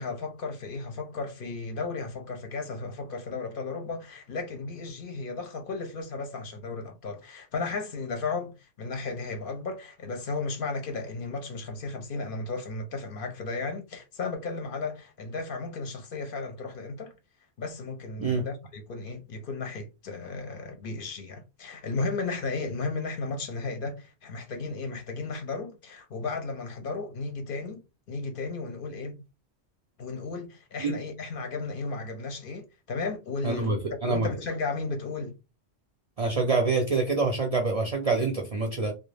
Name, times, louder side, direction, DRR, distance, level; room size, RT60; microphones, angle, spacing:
voice 1, 0.0-17.1 17.6-29.2 30.0-35.4, left 3 dB, 60° left, 0.7 m, -34 dB
voice 2, 33.4-34.3 36.2-38.9, right 3 dB, 50° right, 0.4 m, -26 dB
2.3 x 2.0 x 3.2 m
omnidirectional pair, 1.1 m